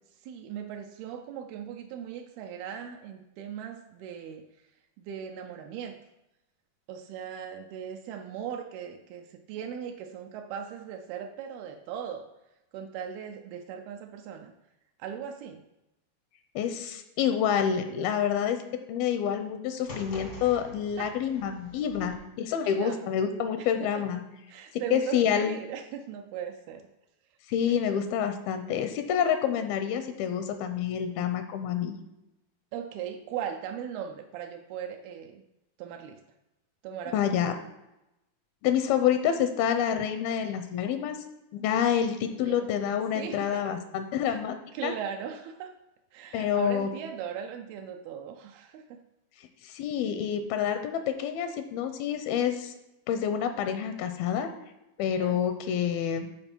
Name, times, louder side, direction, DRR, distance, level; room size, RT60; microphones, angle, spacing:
voice 1, 0.2-4.4 5.0-5.9 6.9-12.2 12.7-14.5 15.0-15.6 21.0-21.2 22.7-23.1 23.6-23.7 24.5-26.9 27.7-28.0 32.7-35.4 35.8-36.2 36.8-37.4 42.3-42.7 43.2-43.8 44.3-44.4 44.7-45.7 46.1-49.0 55.1-55.4, right 8 dB, 85° right, 3 dB, 2.5 m, -38 dB
voice 2, 16.6-18.6 18.9-24.2 24.9-25.6 27.5-32.0 37.1-37.5 38.6-41.2 41.5-44.6 44.8-44.9 46.3-46.9 49.6-52.7 53.1-54.5 55.0-56.3, left 8 dB, 85° left, 8 dB, 2.4 m, -28 dB
sound 1, 19.9-22.1, left 2 dB, 70° left, 0.7 m, -44 dB
11.0 x 4.3 x 4.4 m, 0.91 s
omnidirectional pair, 4.3 m